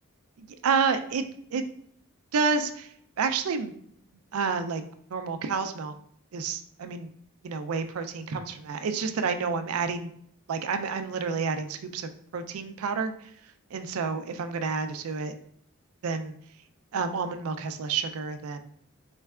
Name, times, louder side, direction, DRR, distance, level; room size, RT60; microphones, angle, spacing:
voice 1, 0.4-1.2 1.5-1.6 2.3-2.9 3.2-3.7 4.3-4.8 5.1-5.9 6.3-7.1 7.4-10.1 10.5-13.1 13.7-15.3 16.0-16.3 16.9-18.7, right 5 dB, 80° right, 8 dB, 0.4 m, -29 dB
4.4 x 3.2 x 2.3 m, 0.66 s
head